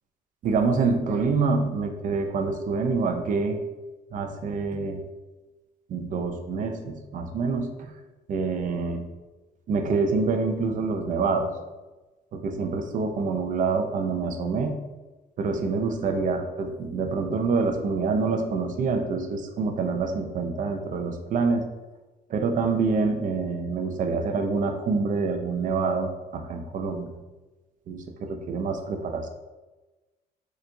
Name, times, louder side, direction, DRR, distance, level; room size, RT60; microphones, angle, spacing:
voice 1, 0.4-3.6 4.1-5.1 5.9-7.9 8.3-9.1 9.7-11.5 12.3-14.8 15.4-21.7 22.3-27.1 27.9-29.3, right 4 dB, 50° right, 5 dB, 0.5 m, -26 dB
4.3 x 2.5 x 2.6 m, 1.2 s
cardioid pair, 110°, 17 cm